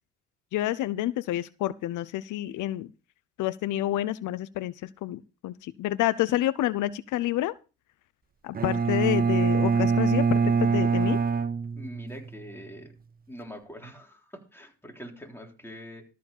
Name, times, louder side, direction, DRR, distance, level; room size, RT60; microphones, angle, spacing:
voice 1, 0.5-2.9 3.4-7.6 8.4-11.2, left 14 dB, 80° left, 17 dB, 0.6 m, -28 dB
Bowed string instrument, 8.5-12.4, right 5 dB, 30° right, 0.7 m, -24 dB
voice 2, 11.7-12.9 13.3-16.1, equal, 10° left, 1 dB, 3.4 m, -44 dB
13.5 x 4.8 x 7.0 m, 0.32 s
cardioid pair, 90°, 30 cm